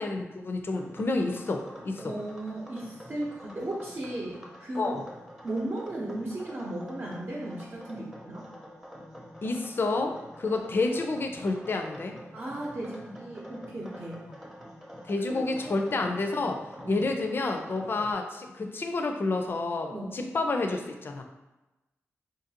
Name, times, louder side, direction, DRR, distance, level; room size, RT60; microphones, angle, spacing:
voice 1, 0.0-2.1 4.8-5.1 9.4-12.2 15.1-21.2, left 3 dB, 50° left, 4 dB, 0.4 m, -29 dB
sound 1, 0.7-18.1, equal, 10° right, 0.7 m, -47 dB
voice 2, 2.0-5.0 5.4-8.5 12.3-14.2 15.3-15.7 16.8-17.0 19.9-20.1, right 1 dB, 50° right, -4 dB, 0.7 m, -36 dB
3.8 x 2.5 x 2.8 m, 1.0 s
wide cardioid pair, 85°, 5 cm